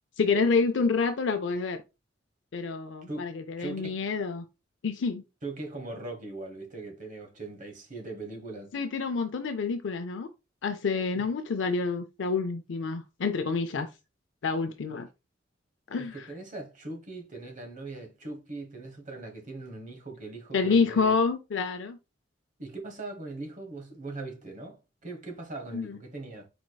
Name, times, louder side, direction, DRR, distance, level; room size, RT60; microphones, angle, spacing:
voice 1, 0.2-1.8 2.5-4.5 4.8-5.2 8.7-10.3 10.6-13.9 14.4-15.1 15.9-16.3 20.5-22.0 25.7-26.0, left 4 dB, 70° left, 0.5 m, -28 dB
voice 2, 3.6-3.9 5.4-8.7 16.3-21.2 22.6-26.5, right 2 dB, 45° right, 1.2 m, -40 dB
4.6 x 4.3 x 2.3 m
head